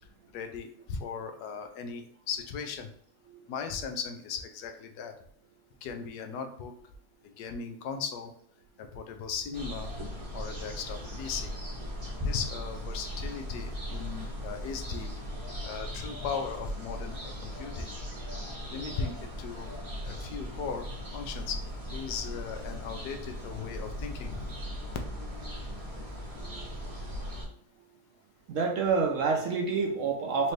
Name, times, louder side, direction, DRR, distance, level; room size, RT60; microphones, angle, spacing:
voice 1, 0.3-2.9 3.5-5.2 5.8-6.7 7.2-8.3 8.8-9.9 10.3-11.5 12.2-15.1 15.6-17.9 18.7-19.7 20.0-20.9 21.1-21.6 21.9-24.5, left 6 dB, 85° left, 5 dB, 1.2 m, -37 dB
sound 1, 9.5-27.5, equal, 30° right, 0.7 m, -38 dB
voice 2, 28.5-30.5, right 4 dB, 65° right, 2 dB, 0.9 m, -28 dB
4.3 x 2.6 x 3.1 m, 0.64 s
omnidirectional pair, 1.7 m